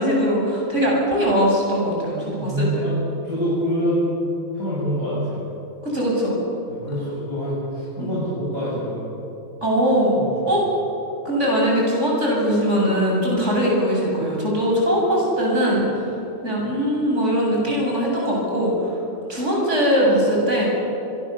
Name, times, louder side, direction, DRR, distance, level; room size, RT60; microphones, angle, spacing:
voice 1, 0.0-2.9 5.8-6.4 8.0-8.1 9.6-10.2 10.5-10.7 11.2-16.0 16.4-19.0 19.3-20.7, equal, 35° right, -3 dB, 8.4 m, -21 dB
voice 2, 2.4-2.9 3.2-5.4 6.7-9.1 10.2-10.5, equal, 45° left, -9 dB, 8.6 m, -26 dB
28.0 x 22.0 x 7.1 m, 2.9 s
omnidirectional pair, 2.0 m